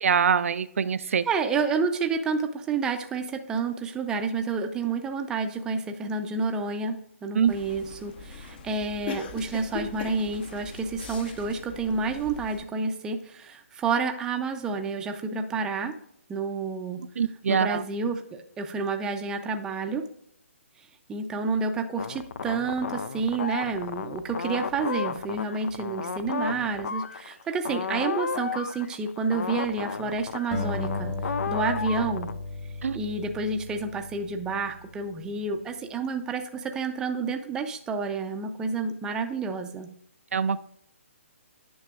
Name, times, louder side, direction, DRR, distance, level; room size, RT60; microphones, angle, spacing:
voice 1, 0.0-1.2 7.3-7.5 17.2-17.8 32.8-33.0 40.3-40.7, right 7 dB, 70° right, 13 dB, 0.4 m, -24 dB
voice 2, 1.0-15.9 16.3-17.0 17.5-20.0 21.1-32.3 32.9-39.9, right 4 dB, 10° right, 5 dB, 0.5 m, -29 dB
sound 1, 7.5-12.6, left 5 dB, 40° left, 0.8 m, -40 dB
sound 2, 22.0-32.3, left 6 dB, 70° left, 0.5 m, -33 dB
Acoustic guitar, 30.5-35.0, left 3 dB, 25° left, 1.4 m, -35 dB
9.5 x 6.0 x 2.4 m, 0.69 s
hypercardioid pair, 155°, 8 cm